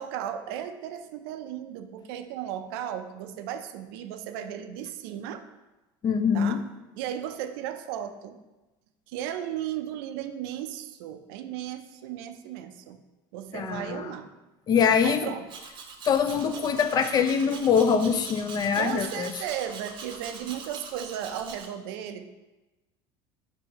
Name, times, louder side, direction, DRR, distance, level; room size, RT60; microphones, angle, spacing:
voice 1, 0.0-5.4 6.3-6.6 7.0-8.4 9.1-13.0 13.3-14.3 15.0-15.5 18.7-22.3, right 10 dB, 75° right, 8 dB, 0.4 m, -35 dB
voice 2, 6.0-6.6 13.5-14.1 14.7-15.3 16.1-19.3, left 6 dB, 35° left, 9 dB, 0.4 m, -24 dB
Domestic sounds home sounds, 15.5-21.7, right 5 dB, 40° right, 0.7 m, -43 dB
4.4 x 2.7 x 4.5 m, 1.1 s
supercardioid pair, 115°, 12 cm